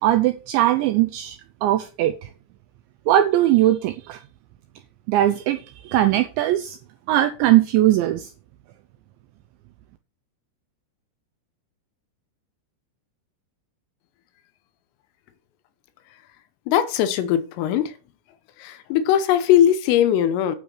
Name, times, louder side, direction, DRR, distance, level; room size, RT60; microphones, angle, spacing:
voice 1, 0.0-2.3 3.1-4.2 5.1-6.8 7.1-8.3, right 13 dB, 85° right, 2.6 m, -20 dB
voice 2, 16.7-17.9 18.6-20.6, left 10 dB, 80° left, 3.6 m, -20 dB
9.5 x 6.3 x 6.5 m
omnidirectional pair, 6.0 m